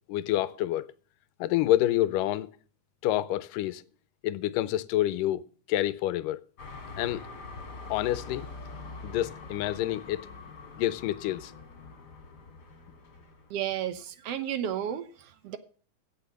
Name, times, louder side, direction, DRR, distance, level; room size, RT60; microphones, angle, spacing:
voice 1, 0.1-0.9 1.4-2.5 3.0-3.8 4.2-5.4 5.7-6.4 7.0-7.2 7.9-8.5 9.0-10.3 10.8-11.5, left 14 dB, 90° left, 2.3 m, -28 dB
sound 1, 6.6-13.8, left 3 dB, 35° left, 2.7 m, -44 dB
voice 2, 13.5-15.6, right 10 dB, 70° right, 1.5 m, -33 dB
16.0 x 6.0 x 7.1 m
omnidirectional pair, 3.7 m